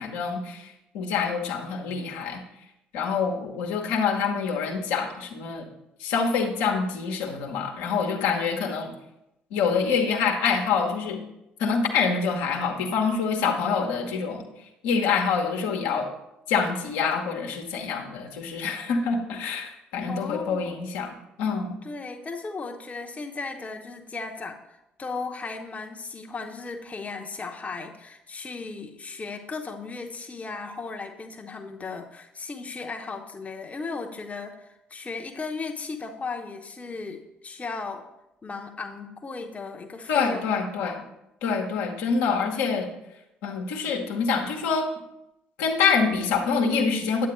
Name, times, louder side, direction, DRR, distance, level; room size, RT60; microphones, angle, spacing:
voice 1, 0.0-2.4 2.9-5.6 6.0-8.9 9.5-11.2 11.6-14.4 14.8-16.1 16.5-21.8 40.1-41.0 41.4-42.9 43.4-44.9 45.6-47.3, left 5 dB, 70° left, 1 dB, 1.2 m, -26 dB
voice 2, 20.1-20.7 21.8-38.0 38.4-41.0, left 4 dB, 25° left, 3 dB, 0.9 m, -36 dB
9.3 x 8.4 x 3.1 m, 0.87 s
figure-of-eight pair, 50°, 5 cm